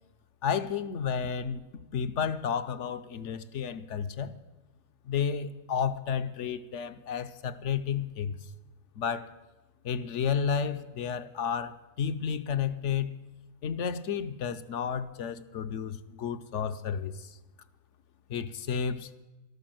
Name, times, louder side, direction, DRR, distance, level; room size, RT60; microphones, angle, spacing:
voice 1, 0.4-1.6 1.9-4.3 5.1-8.4 9.0-9.3 9.8-13.1 13.6-17.3 18.3-19.1, left 7 dB, 60° left, 0.9 m, -31 dB
13.0 x 12.5 x 7.7 m
omnidirectional pair, 1.6 m